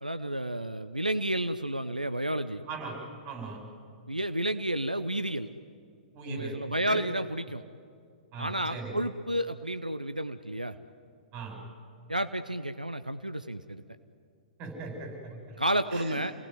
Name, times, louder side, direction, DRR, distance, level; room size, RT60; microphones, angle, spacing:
voice 1, 0.0-2.6 4.1-5.5 6.3-7.6 8.4-10.7 12.1-13.8 15.6-16.3, right 1 dB, 90° right, 11 dB, 0.8 m, -31 dB
voice 2, 2.7-3.0 3.2-3.6 6.1-7.0 8.3-8.9 11.3-11.6 14.6-15.6 15.9-16.2, right 3 dB, 30° right, 3 dB, 7.6 m, -39 dB
29.0 x 19.0 x 9.6 m, 2.3 s
figure-of-eight pair, 110°, 4 cm